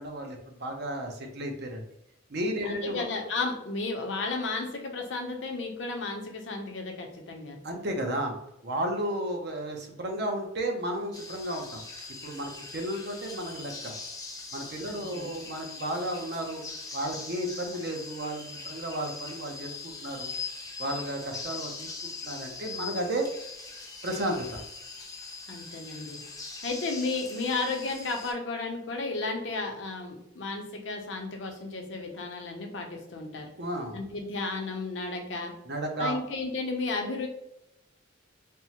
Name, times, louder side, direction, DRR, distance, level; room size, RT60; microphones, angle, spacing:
voice 1, 0.0-1.8 2.3-3.0 7.6-8.3 8.6-11.8 12.2-13.9 14.5-16.6 16.9-20.3 20.8-21.9 22.2-23.3 24.0-24.6 33.6-34.0 35.6-36.2, right 1 dB, 55° right, 2 dB, 0.6 m, -33 dB
voice 2, 2.6-7.6 14.9-15.3 25.5-26.2 26.6-33.5 33.9-35.5 36.0-37.3, left 3 dB, 65° left, 3 dB, 0.6 m, -33 dB
sound 1, 11.1-28.3, left 4 dB, 20° left, 0.5 m, -41 dB
3.4 x 2.0 x 2.8 m, 0.82 s
head